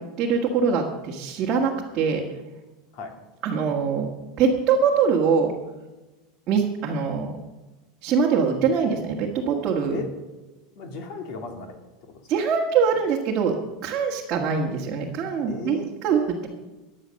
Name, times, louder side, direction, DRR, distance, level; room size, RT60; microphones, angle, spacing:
voice 1, 0.2-2.2 3.4-4.1 4.4-5.5 6.5-7.4 8.0-10.0 12.3-13.5 13.8-15.8 16.0-16.5, right 6 dB, 25° right, -3 dB, 1.7 m, -23 dB
voice 2, 10.7-11.8 12.1-12.3 15.5-15.9, left 4 dB, 45° left, 5 dB, 2.6 m, -35 dB
15.5 x 10.0 x 6.5 m, 1.1 s
supercardioid pair, 180°, 0 cm